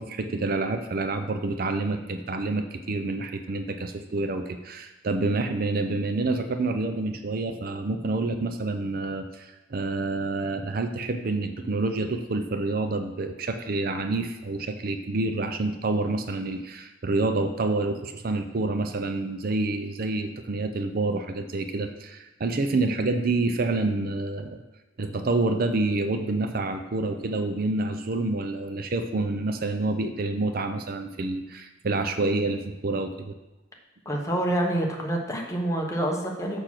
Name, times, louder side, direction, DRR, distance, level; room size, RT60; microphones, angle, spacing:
voice 1, 0.0-24.6 25.0-33.3, right 2 dB, 50° right, 7 dB, 0.6 m, -28 dB
voice 2, 34.0-36.6, right 1 dB, 15° left, 0 dB, 1.2 m, -27 dB
6.8 x 6.1 x 5.9 m, 1.0 s
head